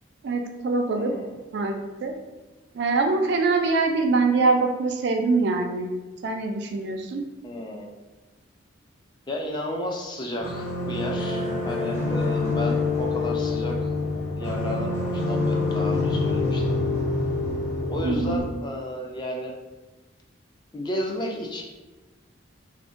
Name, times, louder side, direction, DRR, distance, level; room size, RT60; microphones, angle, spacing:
voice 1, 0.2-1.1 1.5-2.1 2.7-5.9 6.2-7.2 18.0-18.4, right 3 dB, 55° right, 4 dB, 0.3 m, -24 dB
voice 2, 1.0-1.4 7.4-7.9 9.3-13.9 14.3-16.8 17.9-19.5 20.7-21.6, left 1 dB, 20° left, 0 dB, 0.3 m, -32 dB
sound 1, 10.4-18.4, left 3 dB, 45° left, 1.1 m, -26 dB
2.5 x 2.1 x 3.7 m, 1.2 s
head